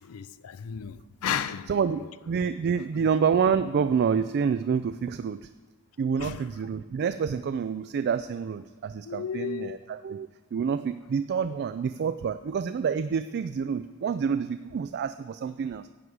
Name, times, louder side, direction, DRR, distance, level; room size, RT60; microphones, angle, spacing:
voice 1, 0.0-2.1 2.9-3.1 6.2-6.5 9.0-9.8, left 8 dB, 70° left, 0.4 m, -34 dB
voice 2, 1.7-5.5 6.0-15.9, right 6 dB, 50° right, 0.3 m, -28 dB
11.0 x 4.7 x 7.9 m
head